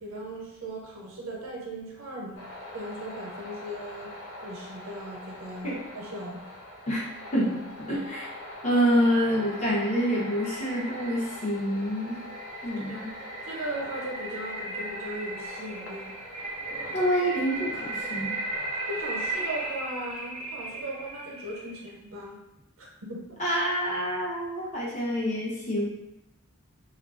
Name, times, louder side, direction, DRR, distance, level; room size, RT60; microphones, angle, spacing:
voice 1, 0.0-2.4 2.7-4.1 4.4-6.4 12.9-13.0 13.4-16.2 18.9-22.4 22.8-23.4, right 1 dB, 75° right, -2 dB, 0.7 m, -38 dB
sound 1, 2.4-19.7, left 1 dB, 80° left, 0.7 m, -43 dB
voice 2, 7.3-8.3 8.6-12.2 12.6-13.1 16.9-18.4 23.4-25.9, equal, 35° left, -6 dB, 0.8 m, -27 dB
sound 2, 8.6-21.9, right 2 dB, 30° right, 0.4 m, -37 dB
3.0 x 2.3 x 2.4 m, 0.88 s
head